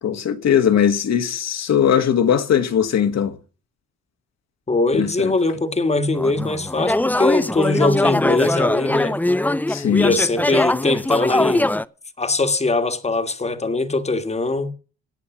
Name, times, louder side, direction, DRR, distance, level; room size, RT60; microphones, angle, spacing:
voice 1, 0.0-3.3 4.9-5.3 9.7-10.1, left 8 dB, 60° left, 1.8 m, -19 dB
voice 2, 4.7-9.2 10.0-11.7 12.2-14.7, left 3 dB, 20° left, 1.7 m, -21 dB
sound 1, 6.1-11.8, left 1 dB, 5° left, 0.6 m, -21 dB
17.0 x 8.5 x 6.0 m
cardioid pair, 90°, 30 cm